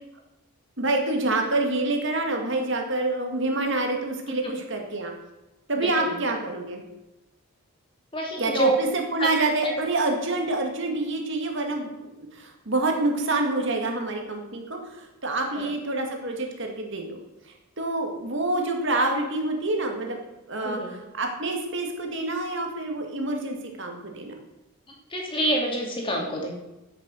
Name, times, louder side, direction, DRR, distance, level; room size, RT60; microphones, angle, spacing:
voice 1, 0.8-5.1 5.7-6.8 8.4-17.2 17.8-20.2 20.5-20.8 21.1-24.3, right 2 dB, 55° right, 2 dB, 2.0 m, -27 dB
voice 2, 5.8-6.1 8.1-8.8 9.2-9.3 9.6-9.7 15.6-15.7 20.6-20.9 25.1-26.5, right 1 dB, 25° left, 0 dB, 2.6 m, -27 dB
14.0 x 6.7 x 6.3 m, 0.99 s
head